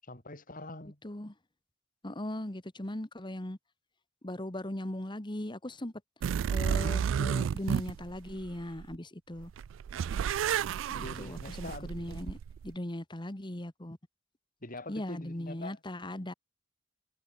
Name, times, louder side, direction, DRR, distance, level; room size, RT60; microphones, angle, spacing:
voice 1, 0.0-1.0 10.9-12.2 14.6-15.8, left 2 dB, 45° left, 6.7 m, -44 dB
voice 2, 1.0-1.3 2.0-3.6 4.2-5.9 6.5-9.5 11.2-12.4 12.6-14.0 14.9-16.3, left 1 dB, 25° left, 1.6 m, -38 dB
sound 1, 6.2-9.0 9.4-12.7, right 8 dB, 90° right, 0.3 m, -32 dB
head